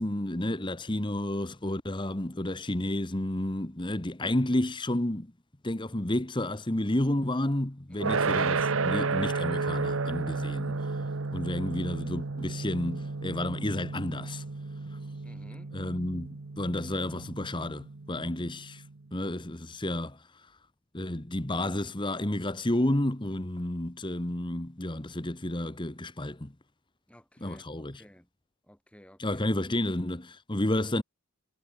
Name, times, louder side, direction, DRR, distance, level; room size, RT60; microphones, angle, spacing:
voice 1, 0.0-5.3 5.6-14.4 15.7-18.8 19.1-20.2 20.9-26.5 27.4-28.0 29.2-31.0, left 1 dB, 20° left, 1.2 m, -31 dB
voice 2, 7.9-8.3 15.2-15.8 27.1-27.6 28.0-28.3 28.7-29.4 29.8-30.0, equal, 5° left, 7.2 m, -53 dB
sound 1, 8.0-19.0, right 4 dB, 65° right, 0.9 m, -32 dB
head